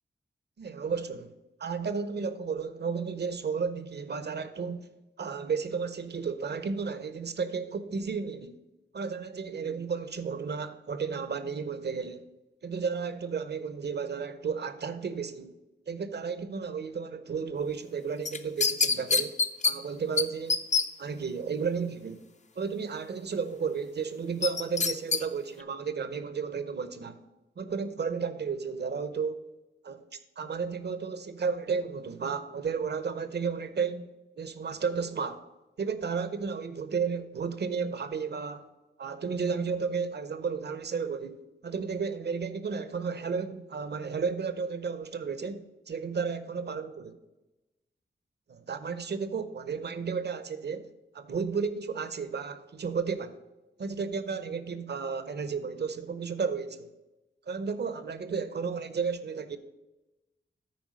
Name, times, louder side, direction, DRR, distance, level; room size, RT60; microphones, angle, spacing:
voice 1, 0.6-1.3 1.6-4.9 5.2-8.6 8.9-12.2 12.6-15.5 15.9-19.4 19.6-20.7 21.0-22.2 22.6-27.2 27.6-29.4 29.8-30.0 30.4-34.1 34.4-35.4 35.8-38.7 39.0-47.1 48.5-50.9 51.1-53.4 53.8-56.9 57.5-59.6, right 5 dB, 60° right, 0.7 m, -33 dB
sound 1, 18.2-19.7 20.2-20.3 20.5-20.8 24.4-25.2 25.6-25.7, left 5 dB, 40° left, 0.6 m, -25 dB
9.3 x 4.5 x 6.3 m
cardioid pair, 70°, 19 cm